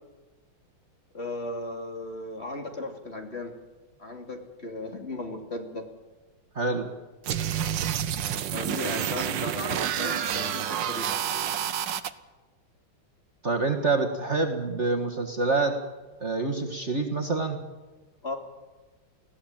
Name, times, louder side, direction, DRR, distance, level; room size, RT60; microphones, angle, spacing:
voice 1, 1.1-3.5 4.0-5.8 8.5-11.1 18.2-18.4, left 2 dB, 30° left, 3 dB, 2.9 m, -36 dB
voice 2, 6.6-6.9 13.4-15.8 16.2-17.6, right 3 dB, 35° right, 4 dB, 1.8 m, -26 dB
sound 1, 7.2-12.1, right 9 dB, 65° right, 1.6 m, -29 dB
20.5 x 16.0 x 8.9 m, 1.2 s
omnidirectional pair, 2.2 m